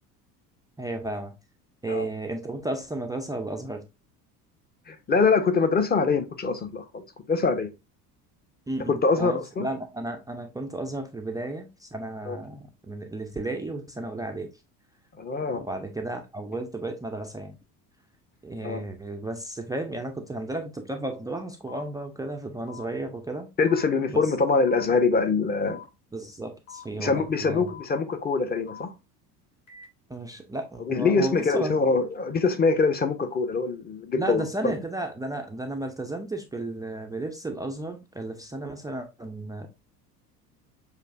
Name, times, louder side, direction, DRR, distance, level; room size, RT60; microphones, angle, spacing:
voice 1, 0.8-1.3 1.8-3.8 8.7-14.5 15.5-17.6 18.4-23.5 24.1-24.2 26.1-27.7 30.1-31.7 34.2-39.7, right 2 dB, 10° right, 0.5 m, -33 dB
voice 2, 4.9-7.7 8.9-9.7 12.2-12.4 15.2-15.6 18.6-18.8 23.6-25.8 27.0-28.9 30.8-34.8, left 4 dB, 20° left, 0.8 m, -24 dB
sound 1, 21.7-21.8 22.7-22.8 23.7-23.8 24.7-24.8 25.7-25.8 26.7-26.8 27.7-27.8 28.7-28.8 29.7-29.8, left 8 dB, 40° left, 2.9 m, -44 dB
6.6 x 2.5 x 2.5 m
hypercardioid pair, 70°, 48 cm